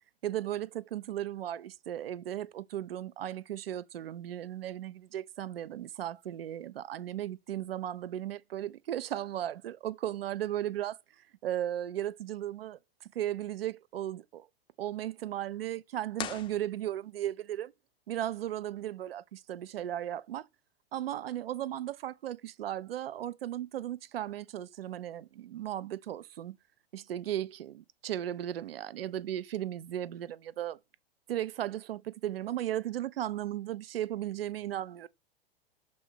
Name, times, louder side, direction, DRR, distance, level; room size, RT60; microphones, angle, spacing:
voice 1, 0.2-11.0 11.4-14.5 14.8-17.7 18.1-20.5 20.9-26.6 26.9-30.8 31.3-35.1, right 12 dB, 70° right, 0.5 m, -36 dB
sound 1, 16.1-17.3, left 10 dB, 15° left, 0.5 m, -41 dB
6.2 x 4.1 x 4.4 m
figure-of-eight pair, 100°, 30 cm